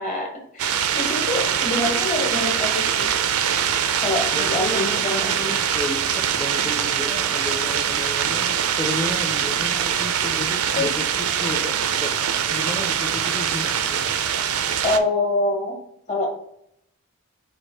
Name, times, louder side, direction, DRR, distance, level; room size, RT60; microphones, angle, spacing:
voice 1, 0.0-3.2 4.0-5.5 10.7-10.9 14.8-15.7 16.1-16.3, left 2 dB, 35° left, 0 dB, 1.2 m, -25 dB
sound 1, 0.6-15.0, right 8 dB, 85° right, 0.4 m, -23 dB
voice 2, 4.3-12.2 12.5-14.1, left 1 dB, 10° left, -3 dB, 0.5 m, -32 dB
4.5 x 2.5 x 4.5 m, 0.71 s
head